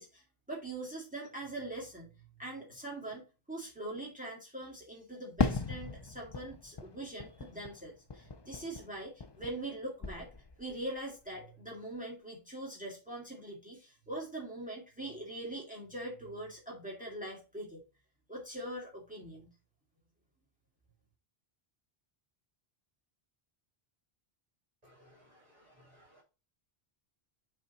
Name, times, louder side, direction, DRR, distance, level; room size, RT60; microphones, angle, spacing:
voice 1, 0.0-2.1 2.4-10.3 10.6-17.8 18.3-19.5, right 1 dB, 10° right, -3 dB, 2.2 m, -42 dB
Fireworks, 5.4-9.7 10.0-10.8, left 4 dB, 35° left, 0.4 m, -37 dB
voice 2, 24.8-26.2, equal, 40° right, -4 dB, 3.0 m, -62 dB
7.6 x 3.7 x 4.1 m, 0.31 s
omnidirectional pair, 1.0 m